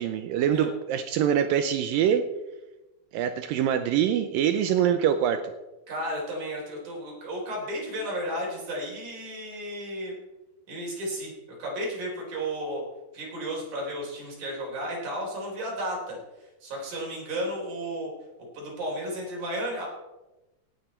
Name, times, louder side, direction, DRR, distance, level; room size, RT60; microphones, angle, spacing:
voice 1, 0.0-2.3 3.1-5.4, right 9 dB, 80° right, 9 dB, 2.1 m, -24 dB
voice 2, 5.9-10.1 10.7-11.3 11.6-12.8 13.1-18.1 18.5-19.9, equal, 50° right, -2 dB, 5.2 m, -33 dB
17.0 x 8.8 x 4.4 m, 1.0 s
omnidirectional pair, 4.6 m